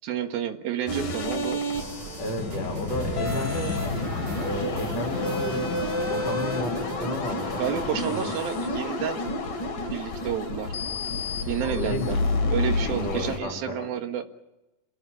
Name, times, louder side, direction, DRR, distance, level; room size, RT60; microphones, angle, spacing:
voice 1, 0.0-1.6 7.6-9.2 9.7-10.8 11.5-12.2 12.5-14.3, right 9 dB, 90° right, 6 dB, 3.5 m, -30 dB
sound 1, 0.9-13.4, left 2 dB, 65° left, 4.7 m, -29 dB
sound 2, 1.7-7.9, right 6 dB, 50° right, 1.6 m, -42 dB
voice 2, 2.2-4.0 4.4-5.8 6.1-8.3 11.6-12.2 12.6-13.9, left 1 dB, 50° left, 1 dB, 4.4 m, -33 dB
27.5 x 16.0 x 8.5 m, 0.99 s
omnidirectional pair, 4.1 m